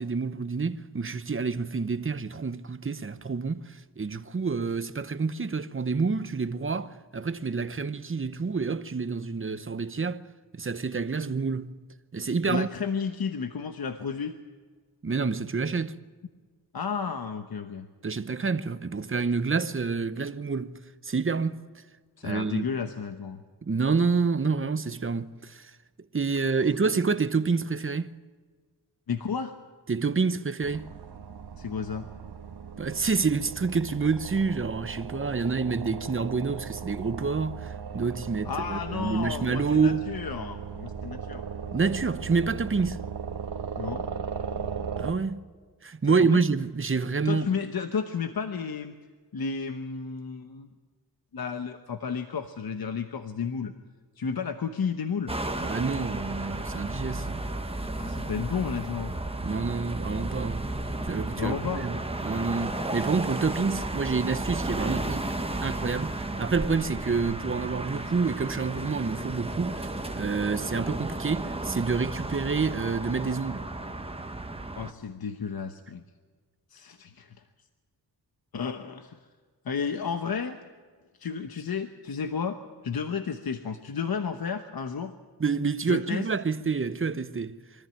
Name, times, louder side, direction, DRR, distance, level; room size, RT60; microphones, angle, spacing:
voice 1, 0.0-10.2 10.5-11.8 12.1-12.7 15.0-16.0 18.0-21.6 22.2-22.7 23.6-25.7 26.1-28.1 29.9-30.9 32.8-40.1 41.7-43.0 45.0-45.4 45.8-47.5 55.6-57.4 59.4-60.8 61.1-65.3 65.6-69.9 70.1-73.7 85.4-87.6, right 4 dB, 30° right, 0.9 m, -28 dB
voice 2, 12.5-14.4 16.7-17.9 22.2-23.4 29.1-29.5 31.6-32.1 38.4-41.5 43.8-44.1 46.0-46.4 47.2-48.9 49.3-50.7 51.3-53.7 54.2-55.3 58.0-59.1 61.4-61.8 74.8-76.0 76.7-77.3 78.5-79.2 79.6-80.6 81.2-85.1 85.9-86.3, left 6 dB, 60° left, 1.1 m, -32 dB
sound 1, 30.6-45.1, right 6 dB, 75° right, 1.3 m, -37 dB
sound 2, 55.3-74.9, right 2 dB, 15° right, 1.2 m, -33 dB
23.5 x 14.0 x 9.0 m
wide cardioid pair, 70°, 41 cm